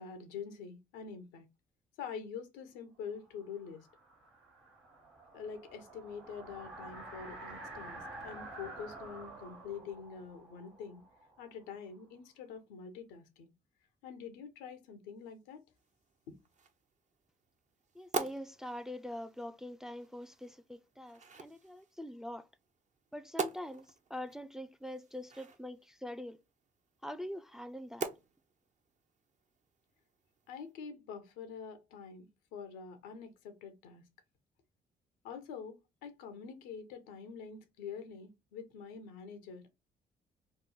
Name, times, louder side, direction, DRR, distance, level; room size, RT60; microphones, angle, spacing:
voice 1, 0.0-1.5 2.0-3.9 5.3-11.0 11.4-13.5 14.0-15.6 16.3-16.4 30.5-34.0 35.2-39.7, left 6 dB, 90° left, 0.6 m, -46 dB
sound 1, 3.2-12.0, right 2 dB, 90° right, 1.3 m, -50 dB
sound 2, 15.7-30.7, right 4 dB, 45° right, 0.6 m, -46 dB
voice 2, 18.0-22.5 23.1-23.8 24.1-26.4 27.0-28.1, left 1 dB, 5° right, 0.3 m, -44 dB
3.0 x 2.1 x 3.7 m
supercardioid pair, 55°, 18 cm